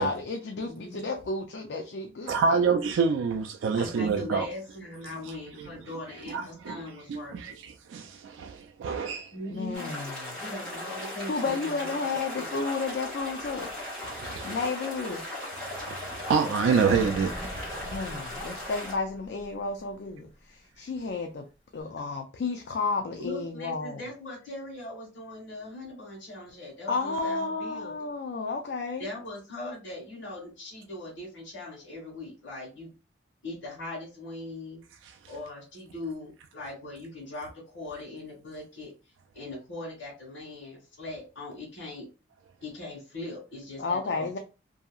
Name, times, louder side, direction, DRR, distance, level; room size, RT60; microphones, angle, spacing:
voice 1, 0.0-2.6 9.5-10.5 11.3-13.7 14.4-15.3 17.9-21.4 21.7-24.0 26.9-29.1 43.8-44.4, left 4 dB, 60° left, 0.4 m, -32 dB
voice 2, 0.7-1.0 3.8-7.6 9.3-10.0 10.4-12.6 23.2-28.1 29.0-32.9 33.4-34.8 35.3-38.9 39.3-42.1 42.6-44.4, left 1 dB, 85° left, 1.3 m, -40 dB
voice 3, 2.3-4.5 5.2-5.9 6.3-9.3 14.0-14.6 15.6-17.9 35.0-35.3, right 5 dB, 85° right, 0.3 m, -28 dB
sound 1, 9.7-18.9, left 1 dB, 5° left, 1.3 m, -37 dB
sound 2, 16.6-19.5 19.9-20.0, equal, 25° left, 0.9 m, -40 dB
2.7 x 2.7 x 2.3 m
head